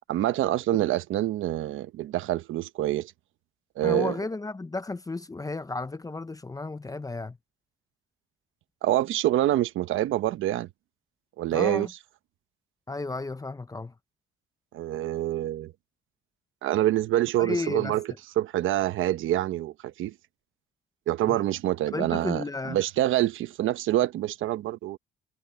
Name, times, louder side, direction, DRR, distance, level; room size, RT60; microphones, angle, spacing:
voice 1, 0.1-3.1 3.8-4.2 8.8-10.7 11.4-11.9 14.7-15.7 16.6-18.1 18.4-20.1 21.1-25.0, right 13 dB, 85° right, 1.0 m, -26 dB
voice 2, 3.8-7.4 11.5-11.9 12.9-13.9 17.4-18.0 21.3-21.5 21.9-22.8, left 3 dB, 15° left, 0.8 m, -33 dB
cardioid pair, 90°, 20 cm